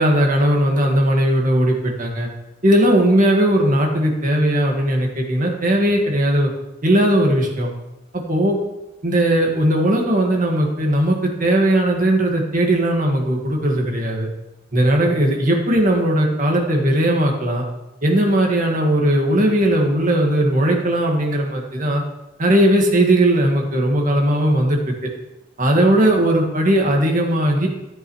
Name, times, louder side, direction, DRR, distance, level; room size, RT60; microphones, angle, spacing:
voice 1, 0.0-2.3 2.6-6.5 6.8-7.7 8.3-8.6 9.0-14.3 14.7-17.6 18.0-22.0 22.4-24.9 25.6-27.7, right 1 dB, 45° right, 0 dB, 1.8 m, -18 dB
13.0 x 8.8 x 3.2 m, 0.94 s
head